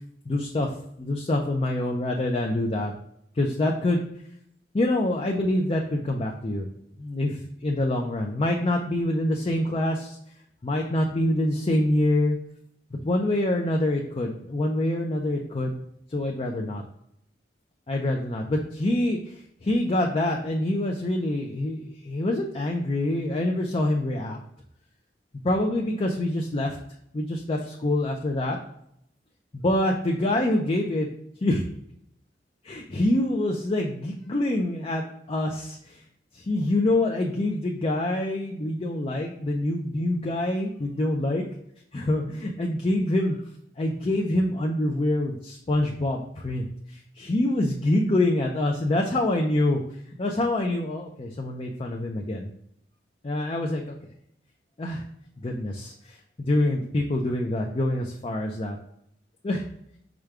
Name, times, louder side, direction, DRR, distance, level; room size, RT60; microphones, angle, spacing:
voice 1, 0.3-0.7 1.0-2.9 3.4-4.0 4.7-6.7 7.0-10.2 10.6-12.4 13.0-15.8 16.1-16.8 17.9-24.4 25.4-26.8 27.1-28.6 29.5-31.1 31.4-31.7 32.6-36.0 36.3-41.4 41.9-43.4 43.8-49.8 50.2-52.5 53.2-53.9 54.8-55.0 55.4-58.8 59.4-59.6, left 1 dB, 35° left, 1 dB, 0.5 m, -26 dB
5.0 x 2.2 x 4.6 m, 0.72 s
head